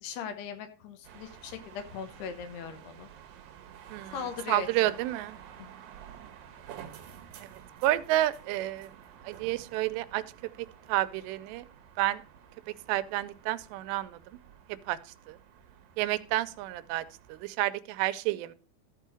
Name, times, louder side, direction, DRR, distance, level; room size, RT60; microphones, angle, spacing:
voice 1, 0.0-3.1 4.1-5.0 5.6-5.7, left 7 dB, 75° left, 8 dB, 3.0 m, -39 dB
sound 1, 1.0-17.5, right 9 dB, 70° right, 2.6 m, -51 dB
voice 2, 4.5-5.4 7.4-7.5 7.8-8.9 9.2-10.2 10.9-11.6 12.0-12.2 12.9-14.2 14.9-15.0 15.3-15.4 16.0-17.0 17.3-18.5, right 15 dB, 85° right, 14 dB, 2.8 m, -29 dB
13.5 x 4.6 x 4.8 m, 0.35 s
omnidirectional pair, 4.9 m